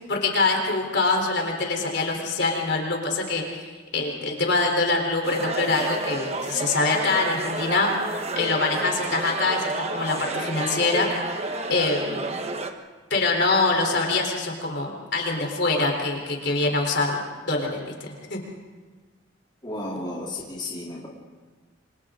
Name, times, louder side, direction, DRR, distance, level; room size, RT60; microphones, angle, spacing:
voice 1, 0.1-7.9 8.4-11.1 11.7-12.3 13.1-18.4, left 3 dB, 60° left, 1 dB, 3.9 m, -24 dB
sound 1, 5.2-12.7, right 3 dB, 30° right, 1.2 m, -30 dB
voice 2, 19.6-21.1, left 1 dB, 20° left, -4 dB, 3.2 m, -33 dB
29.0 x 25.0 x 3.9 m, 1.3 s
head